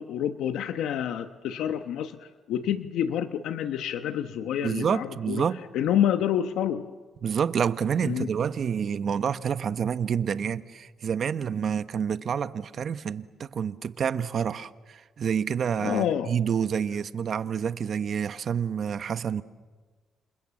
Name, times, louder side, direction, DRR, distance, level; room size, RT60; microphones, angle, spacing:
voice 1, 0.0-5.4 5.7-6.9 8.0-8.3 15.8-16.3, left 10 dB, 85° left, 1.0 m, -28 dB
voice 2, 4.6-5.6 7.2-19.4, right 7 dB, 55° right, 1.0 m, -28 dB
28.0 x 28.0 x 7.6 m
cardioid pair, 90°, 0 cm